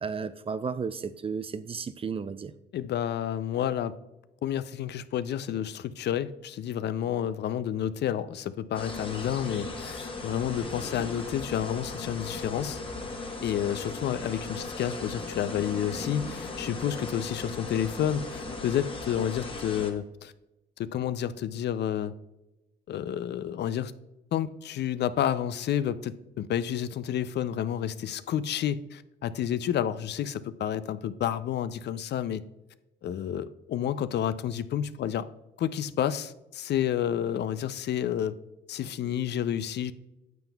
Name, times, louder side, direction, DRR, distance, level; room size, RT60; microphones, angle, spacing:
voice 1, 0.0-2.5, right 5 dB, 30° right, 0.4 m, -33 dB
voice 2, 2.7-4.0 4.4-12.8 13.4-20.3 20.8-22.1 22.9-23.9 24.3-32.4 33.0-35.3 35.6-38.4 38.7-39.9, left 10 dB, 60° left, 0.4 m, -30 dB
sound 1, 8.7-19.9, left 3 dB, 25° left, 1.1 m, -37 dB
9.1 x 7.0 x 2.3 m
cardioid pair, 90°, 20 cm